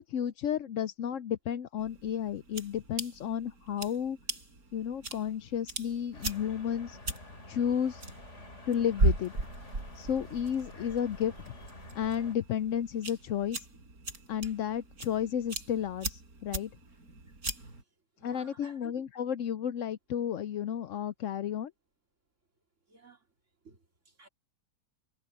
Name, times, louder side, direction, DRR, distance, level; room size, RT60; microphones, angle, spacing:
voice 1, 0.0-4.2 4.7-7.0 7.5-8.0 8.7-9.3 10.0-11.3 11.9-13.6 14.3-16.7 18.2-21.7, left 9 dB, 65° left, 0.8 m, -32 dB
sound 1, 1.8-17.8, right 2 dB, 65° right, 5.6 m, -38 dB
sound 2, 6.1-12.4, left 2 dB, 45° left, 3.6 m, -49 dB
voice 2, 18.2-19.0 22.9-23.2 23.6-24.3, right 3 dB, 45° right, 3.7 m, -55 dB
omnidirectional pair, 1.7 m